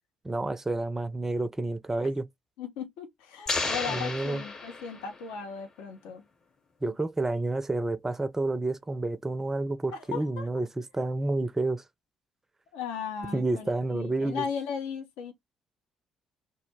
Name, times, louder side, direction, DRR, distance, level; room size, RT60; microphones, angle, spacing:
voice 1, 0.2-2.3 3.9-4.4 6.8-11.8 13.3-14.4, right 2 dB, 20° right, 0.4 m, -29 dB
voice 2, 2.6-6.2 9.9-10.5 12.7-15.3, left 6 dB, 70° left, 0.5 m, -37 dB
sound 1, 3.5-5.3, left 3 dB, 35° left, 0.8 m, -33 dB
2.1 x 2.0 x 3.2 m
figure-of-eight pair, 45°, 2 cm